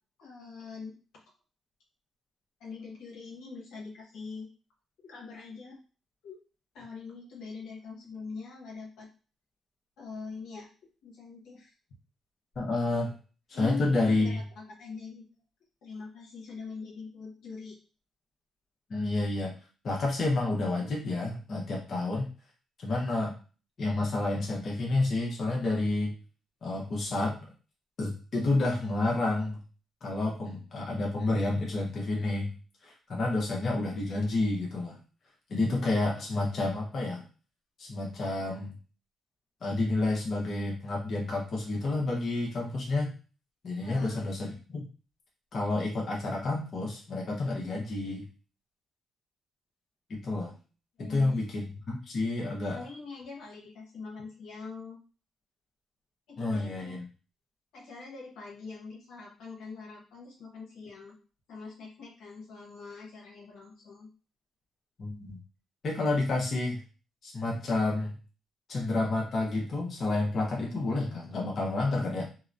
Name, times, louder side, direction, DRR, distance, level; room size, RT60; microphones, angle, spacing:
voice 1, 0.2-1.0 2.6-4.5 5.0-5.8 6.2-6.4 6.7-9.1 10.0-10.7 11.0-11.7 13.5-15.3 15.8-17.8 43.8-44.2 51.0-51.4 52.7-55.0 56.3-57.0 57.7-61.1 61.5-64.1, left 4 dB, 80° left, -3 dB, 0.9 m, -43 dB
voice 2, 12.6-13.1 13.6-14.4 18.9-19.5 19.8-22.3 22.8-23.3 23.8-26.1 26.6-27.5 28.0-29.6 30.0-32.5 32.8-35.0 35.5-37.2 37.8-38.7 39.6-43.1 43.6-44.9 45.5-48.3 50.1-50.5 51.0-52.8 56.4-57.0 65.0-65.4 65.8-66.8 67.2-68.1 68.7-72.2, left 2 dB, 50° left, -2 dB, 0.8 m, -29 dB
2.9 x 2.0 x 2.5 m, 0.35 s
cardioid pair, 90°, 0 cm